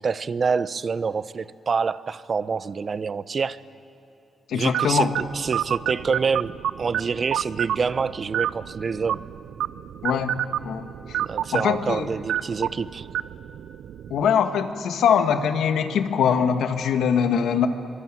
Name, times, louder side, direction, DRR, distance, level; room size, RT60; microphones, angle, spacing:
voice 1, 0.0-3.6 4.5-9.2 11.2-13.1, right 5 dB, 55° right, 15 dB, 1.0 m, -27 dB
voice 2, 4.5-5.1 10.0-11.2 11.5-12.1 14.1-17.7, left 7 dB, 80° left, 7 dB, 1.8 m, -22 dB
sound 1, 4.7-14.3, right 11 dB, 80° right, 0.5 m, -30 dB
25.0 x 24.0 x 9.2 m, 2.8 s
supercardioid pair, 45°, 0 cm